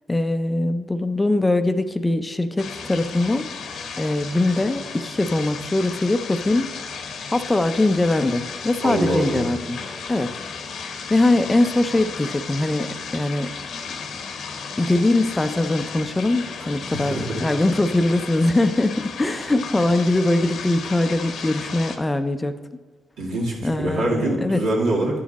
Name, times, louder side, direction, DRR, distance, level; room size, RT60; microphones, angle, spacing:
voice 1, 0.1-3.5 4.0-6.7 7.3-9.8 10.1-10.3 10.8-13.5 14.8-22.6 23.6-24.6, left 2 dB, 15° left, 9 dB, 0.4 m, -22 dB
sound 1, 2.6-22.0, left 5 dB, 70° left, 0.8 m, -34 dB
voice 2, 8.8-9.5 16.9-17.2 23.2-25.2, right 1 dB, 85° right, -4 dB, 2.3 m, -24 dB
10.0 x 5.0 x 4.1 m, 1.5 s
cardioid pair, 95°, 0 cm